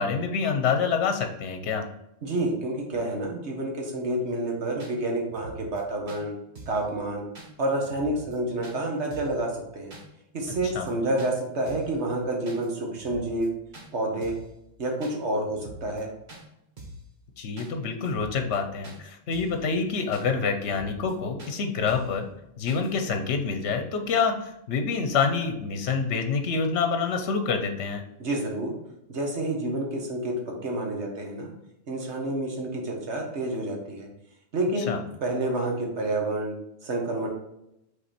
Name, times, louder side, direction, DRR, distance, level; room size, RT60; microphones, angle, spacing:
voice 1, 0.0-1.8 10.7-10.9 17.4-22.3 22.6-28.0 34.9-35.0, left 5 dB, 65° left, 6 dB, 1.0 m, -27 dB
voice 2, 2.2-6.3 6.7-7.2 7.6-9.9 10.3-13.5 13.9-14.3 14.8-16.1 28.2-28.7 29.1-31.5 31.9-34.1 34.5-36.5 36.8-37.3, right 1 dB, 65° right, 0 dB, 1.6 m, -29 dB
sound 1, 4.2-4.3 4.8-4.9 5.3-5.8 6.1-6.2 6.6-6.9 7.4-7.5 7.8-8.4 8.6-8.8 9.1-9.4 9.9-10.1 10.4-10.9 11.2-11.3 11.7-12.0 12.5-12.7 12.9-13.5 13.7-13.9 14.2-14.5 15.0-15.2 15.5-16.0 16.3-16.4 16.8-17.1 17.6-17.7 18.0-18.6 18.8-19.0 19.3-19.6 20.1-20.3 20.6-21.1 21.4-21.5 21.9-22.2 22.7-22.9, right 1 dB, 40° right, 1.3 m, -44 dB
5.6 x 4.2 x 4.3 m, 0.84 s
omnidirectional pair, 1.3 m